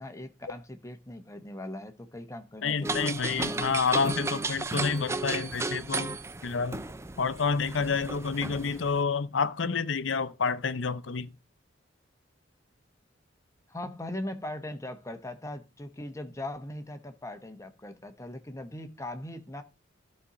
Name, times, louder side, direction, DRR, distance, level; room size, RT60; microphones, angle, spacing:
voice 1, 0.0-3.6 7.6-8.0 8.4-8.7 13.7-19.6, left 1 dB, 15° left, 1.0 m, -40 dB
voice 2, 2.6-6.2 6.4-6.8 7.2-11.3, left 5 dB, 80° left, 0.6 m, -29 dB
sound 1, 2.8-9.0, right 3 dB, 15° right, 0.4 m, -34 dB
12.5 x 4.3 x 5.0 m
head